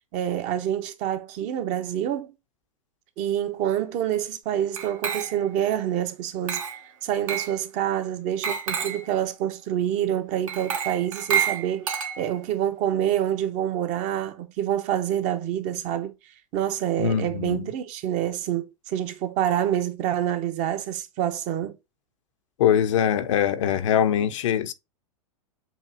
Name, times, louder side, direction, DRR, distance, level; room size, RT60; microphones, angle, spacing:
voice 1, 0.1-2.3 3.2-6.6 7.0-11.9 12.2-16.1 16.5-21.8, right 10 dB, 45° right, 0.8 m, -27 dB
Glass, 4.8-5.6 6.5-6.9 7.3-7.6 8.4-9.1 10.5-12.5, right 7 dB, 70° right, 1.2 m, -29 dB
voice 2, 17.0-17.7 22.6-24.7, left 9 dB, 65° left, 0.7 m, -22 dB
7.1 x 2.7 x 2.7 m
hypercardioid pair, 95°, 17 cm